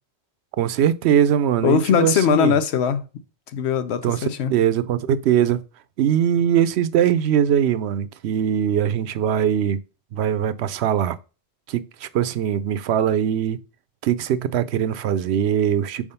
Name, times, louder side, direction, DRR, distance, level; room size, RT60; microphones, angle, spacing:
voice 1, 0.6-2.5 4.0-5.6 6.0-9.8 10.1-11.2 11.7-13.6 14.0-16.1, right 9 dB, 80° right, 0.8 m, -21 dB
voice 2, 1.6-3.0 3.5-4.5, left 7 dB, 85° left, 1.0 m, -20 dB
5.0 x 3.6 x 5.4 m
omnidirectional pair, 1.1 m